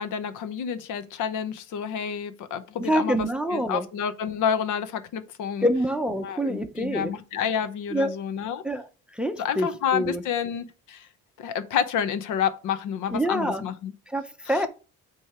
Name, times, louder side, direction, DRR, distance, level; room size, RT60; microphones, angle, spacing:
voice 1, 0.0-3.2 3.5-5.7 6.2-8.6 9.4-11.1 11.4-13.9 14.5-14.7, left 8 dB, 80° left, 0.9 m, -29 dB
voice 2, 2.8-3.9 5.6-7.1 7.9-8.2 8.6-8.9 9.1-10.2 13.1-13.6 14.1-14.7, equal, 5° right, 0.5 m, -26 dB
8.5 x 3.1 x 4.8 m
cardioid pair, 135°, 30 cm